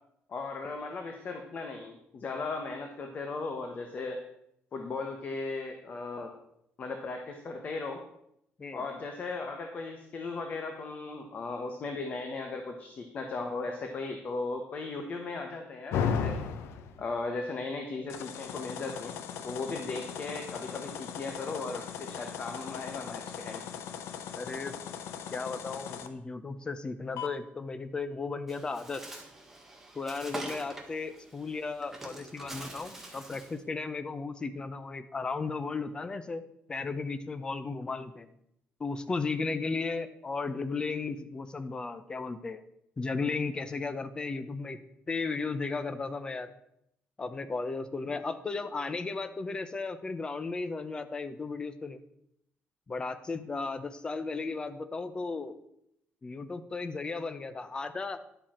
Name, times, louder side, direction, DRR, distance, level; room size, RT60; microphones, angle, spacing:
voice 1, 0.3-4.2 4.7-6.3 6.8-8.0 8.7-16.3 17.0-19.2 19.4-23.6, left 3 dB, 35° left, 4 dB, 1.1 m, -37 dB
sound 1, 15.9-17.1 18.1-26.1 27.2-27.3, left 7 dB, 90° left, 0.9 m, -37 dB
voice 2, 24.3-24.7 25.3-29.0 30.0-36.4 36.7-38.3 38.8-42.6 43.0-44.8 45.1-46.5 47.2-52.0 52.9-55.6 56.2-58.2, left 4 dB, 20° left, 11 dB, 0.7 m, -35 dB
Bird, 28.5-33.6, right 1 dB, 5° right, 1.4 m, -45 dB
11.0 x 7.6 x 4.3 m, 0.77 s
cardioid pair, 155°, 4 cm